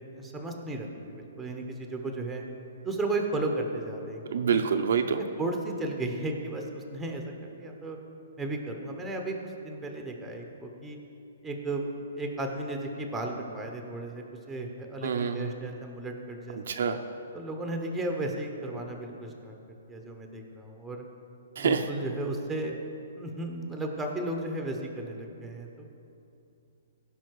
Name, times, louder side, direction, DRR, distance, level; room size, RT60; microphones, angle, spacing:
voice 1, 0.0-2.4 2.8-4.2 4.5-4.6 5.2-8.0 8.4-9.4 9.6-11.0 11.4-11.9 12.2-16.6 17.3-19.5 19.9-21.0 21.6-22.7 23.1-25.9, right 2 dB, 5° right, 2 dB, 1.0 m, -34 dB
voice 2, 4.3-5.2 15.0-15.5 16.7-17.0 21.6-21.8, right 6 dB, 65° right, 6 dB, 0.7 m, -26 dB
16.5 x 5.6 x 4.7 m, 2.7 s
hypercardioid pair, 160°, 0 cm